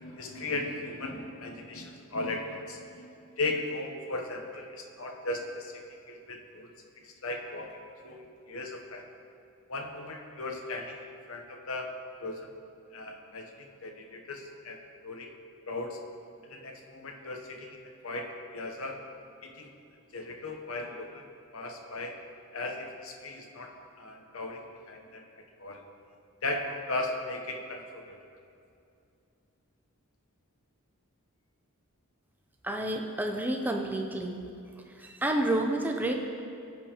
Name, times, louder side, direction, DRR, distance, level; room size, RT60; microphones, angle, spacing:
voice 1, 0.0-3.1 3.4-5.7 6.1-6.7 7.0-7.8 8.0-9.1 9.7-11.9 12.2-12.5 12.9-14.8 15.0-15.3 15.7-16.0 16.4-19.0 19.4-19.7 20.1-21.3 21.5-22.2 22.5-25.8 26.4-28.2, left 2 dB, 70° left, 2 dB, 0.8 m, -37 dB
voice 2, 32.6-34.4 35.0-36.1, right 1 dB, 10° right, 2 dB, 0.5 m, -29 dB
15.0 x 5.3 x 2.9 m, 2.6 s
head